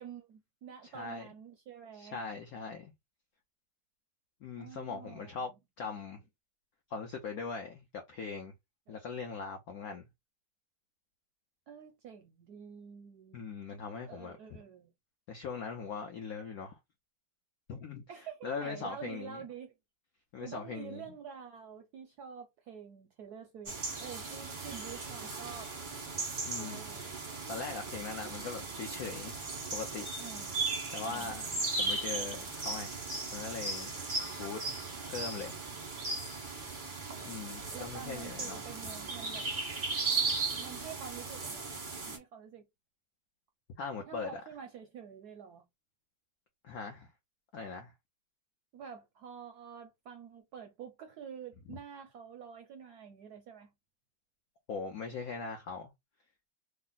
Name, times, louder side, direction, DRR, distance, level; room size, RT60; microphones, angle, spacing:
voice 1, 0.0-2.2 4.6-5.4 8.9-9.0 11.7-13.4 14.1-14.9 18.1-19.7 20.4-25.7 26.6-27.1 30.2-30.7 31.0-31.4 37.7-39.5 40.5-41.7 42.0-42.6 44.1-45.6 48.7-53.7, right 7 dB, 75° right, 0.9 m, -48 dB
voice 2, 0.9-1.3 2.0-2.9 4.4-5.5 5.8-6.2 6.9-7.8 8.1-8.5 8.9-10.1 13.3-14.4 15.3-16.8 17.7-18.0 18.4-19.4 20.3-21.0 26.4-26.8 27.5-29.4 29.7-30.1 30.9-33.9 34.4-34.6 35.0-35.6 37.2-38.6 43.8-44.4 46.6-47.1 47.5-47.9 51.7-51.8 54.7-55.9, left 5 dB, 75° left, 0.8 m, -40 dB
sound 1, 23.7-42.2, right 3 dB, 40° right, 0.7 m, -37 dB
3.3 x 2.0 x 3.8 m
omnidirectional pair, 2.2 m